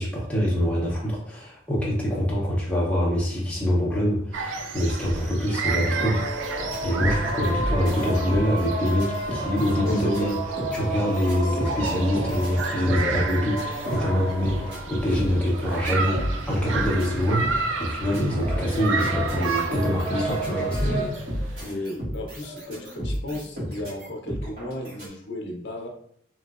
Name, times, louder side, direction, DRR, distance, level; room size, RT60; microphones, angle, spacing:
voice 1, 0.0-10.4 10.7-21.7, equal, 5° left, -5 dB, 0.6 m, -25 dB
sound 1, 4.3-21.6, right 4 dB, 80° right, 0.4 m, -32 dB
sound 2, 5.6-21.0, right 1 dB, 25° right, 1.0 m, -33 dB
sound 3, 6.0-25.1, equal, 50° right, 1.5 m, -33 dB
voice 2, 9.8-10.3 21.6-25.9, left 1 dB, 65° left, 2 dB, 0.6 m, -34 dB
3.1 x 2.8 x 2.3 m, 0.66 s
head